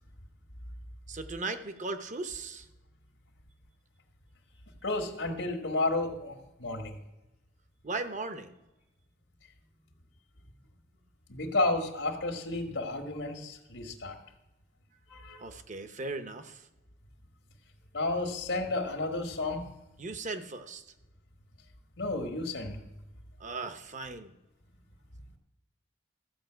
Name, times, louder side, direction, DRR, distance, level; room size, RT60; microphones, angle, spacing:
voice 1, 1.1-2.7 7.8-8.5 15.3-16.7 20.0-20.9 23.4-24.3, right 3 dB, 40° right, 9 dB, 0.9 m, -37 dB
voice 2, 4.8-7.0 11.3-14.2 15.1-15.4 17.9-19.7 22.0-22.8, left 2 dB, 80° left, 2 dB, 1.6 m, -32 dB
14.5 x 5.4 x 7.9 m, 1.0 s
head